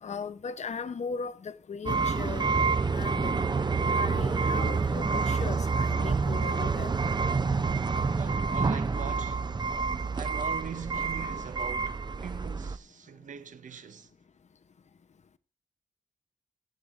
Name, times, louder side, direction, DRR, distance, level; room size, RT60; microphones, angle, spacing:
voice 1, 0.0-3.4 3.9-6.9, left 5 dB, 60° left, 0.8 m, -38 dB
sound 1, 1.9-12.8, right 4 dB, 35° right, 0.7 m, -28 dB
voice 2, 8.2-9.5 10.1-14.1, right 7 dB, 80° right, 0.9 m, -42 dB
18.5 x 7.1 x 3.7 m
cardioid pair, 75°, 13 cm